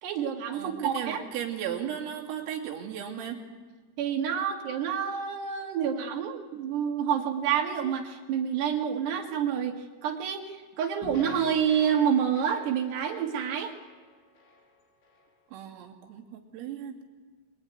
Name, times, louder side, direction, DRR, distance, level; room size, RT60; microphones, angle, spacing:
voice 1, 0.0-1.2 4.0-13.7, right 8 dB, 65° right, 4 dB, 3.5 m, -28 dB
voice 2, 0.5-3.4 15.5-17.0, right 9 dB, 85° right, 0 dB, 5.3 m, -36 dB
sound 1, 11.0-15.3, left 4 dB, 60° left, 5.4 m, -48 dB
26.5 x 22.5 x 9.6 m, 1.4 s
omnidirectional pair, 5.9 m